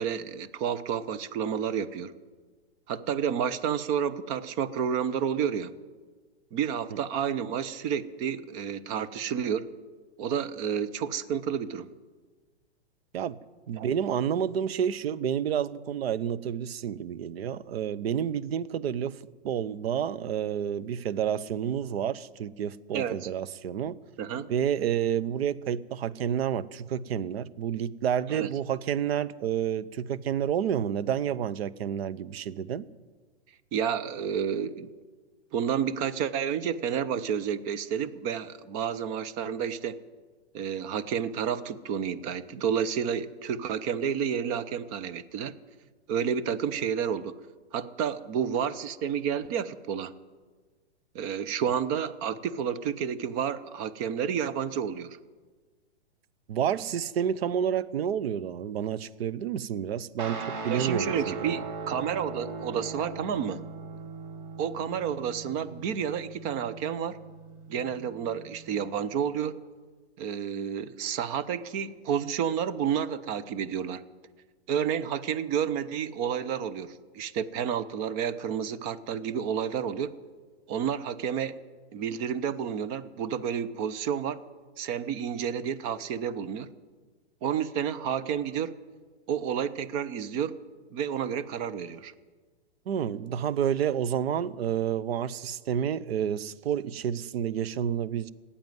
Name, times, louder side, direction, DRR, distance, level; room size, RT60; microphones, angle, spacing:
voice 1, 0.0-2.1 2.9-5.7 6.5-9.7 10.2-11.9 13.8-13.9 22.9-23.2 24.2-24.5 28.3-28.5 33.7-34.9 35.5-40.0 40.5-45.5 46.1-47.3 47.7-50.1 51.1-55.2 60.7-63.6 64.6-67.2 67.7-69.6 70.2-74.1 74.7-80.1 80.7-81.6 81.9-84.4 84.8-86.7 87.4-88.7 89.3-90.6 90.9-92.1, right 8 dB, 30° right, 0.7 m, -30 dB
voice 2, 13.7-19.1 19.4-24.0 24.5-32.9 56.5-61.6 92.9-98.3, right 9 dB, 65° right, 0.8 m, -29 dB
Guitar, 60.2-68.9, right 4 dB, 50° right, 2.1 m, -39 dB
18.0 x 8.6 x 9.3 m
hypercardioid pair, 140°, 33 cm